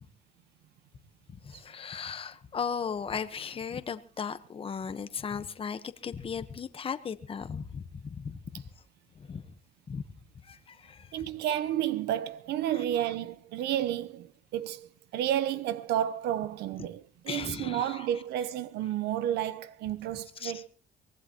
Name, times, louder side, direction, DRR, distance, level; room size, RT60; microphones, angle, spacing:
voice 1, 1.4-8.6 9.1-9.5 9.9-10.0 10.4-11.2 12.7-12.8 17.3-18.1 20.4-20.6, left 6 dB, 35° left, 1.2 m, -37 dB
voice 2, 11.1-20.7, right 11 dB, 80° right, 1.0 m, -31 dB
24.0 x 18.5 x 3.0 m
cardioid pair, 110°, 17 cm